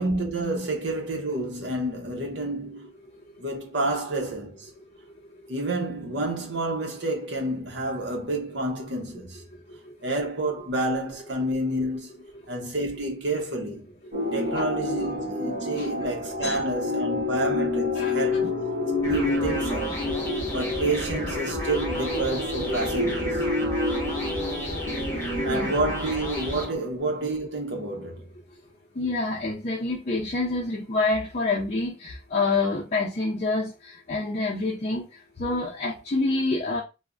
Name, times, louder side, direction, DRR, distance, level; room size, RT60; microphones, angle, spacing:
voice 1, 0.0-2.9 3.4-4.7 5.5-9.4 10.0-13.9 14.3-18.5 19.0-20.0 20.5-23.4 25.4-28.3, right 2 dB, 65° right, 0.8 m, -29 dB
sound 1, 14.1-25.9, left 2 dB, 40° right, 1.2 m, -28 dB
voice 2, 14.2-14.7 15.8-16.1 16.4-16.6 17.9-18.4 19.0-19.1 23.6-25.7 28.9-36.8, left 3 dB, 40° left, 0.5 m, -28 dB
sound 2, 19.0-26.6, equal, 15° left, 0.8 m, -33 dB
3.2 x 2.1 x 2.4 m
head